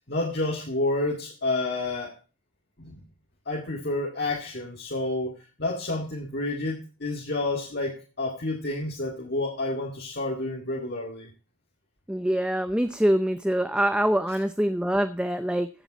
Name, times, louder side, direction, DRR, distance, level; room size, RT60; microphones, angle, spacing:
voice 1, 0.1-2.2 2.8-3.0 3.5-11.3, left 2 dB, 50° left, 0 dB, 2.2 m, -29 dB
voice 2, 12.1-15.7, right 1 dB, 5° right, 10 dB, 0.5 m, -24 dB
15.5 x 7.7 x 4.1 m, 0.35 s
head